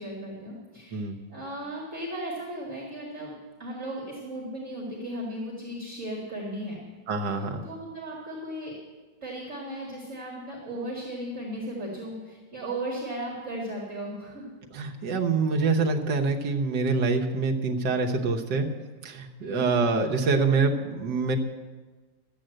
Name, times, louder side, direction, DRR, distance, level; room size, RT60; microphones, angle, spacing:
voice 1, 0.0-1.0 1.3-3.3 3.6-6.8 7.6-8.8 9.2-14.5 19.4-19.8, right 1 dB, 40° right, -3 dB, 2.3 m, -36 dB
voice 2, 7.1-7.6 14.7-18.7 19.0-21.4, right 4 dB, 70° right, 2 dB, 1.7 m, -25 dB
13.0 x 8.2 x 7.7 m, 1.3 s
omnidirectional pair, 2.0 m